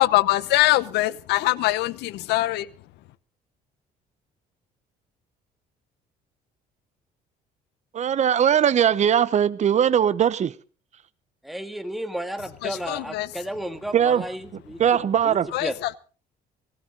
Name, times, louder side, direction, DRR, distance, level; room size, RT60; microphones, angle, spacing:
voice 1, 0.0-2.7 12.6-13.3 15.5-16.0, left 17 dB, 85° left, 18 dB, 0.9 m, -22 dB
voice 2, 7.9-10.5 13.9-14.2 14.8-15.5, right 9 dB, 45° right, 17 dB, 1.0 m, -20 dB
voice 3, 11.4-14.8 15.2-15.8, right 1 dB, ahead, 8 dB, 1.8 m, -33 dB
19.0 x 16.5 x 3.9 m, 0.37 s
cardioid pair, 110°, 17 cm